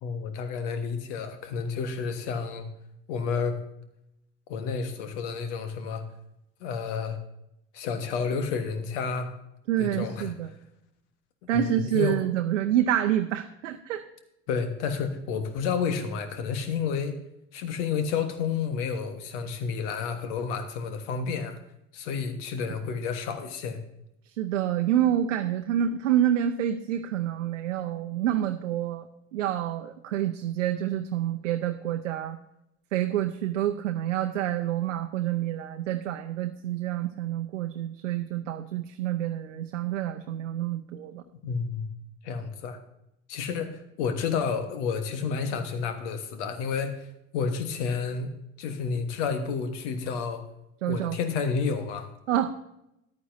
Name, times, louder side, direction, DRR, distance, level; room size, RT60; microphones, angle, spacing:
voice 1, 0.0-2.7 3.1-3.6 4.5-6.0 6.6-7.2 7.7-9.3 9.8-10.3 11.5-12.2 14.5-17.2 17.5-21.5 21.9-23.8 41.4-41.9 42.2-42.8 43.3-47.1 47.3-50.4 50.9-52.1, left 5 dB, 65° left, 8 dB, 1.4 m, -30 dB
voice 2, 9.7-10.5 11.5-14.0 22.8-22.9 24.4-29.1 29.3-32.4 32.9-41.2 50.8-51.2 52.3-52.5, right 11 dB, 75° right, 6 dB, 0.7 m, -27 dB
14.0 x 10.5 x 2.7 m, 0.83 s
figure-of-eight pair, 60°, 37 cm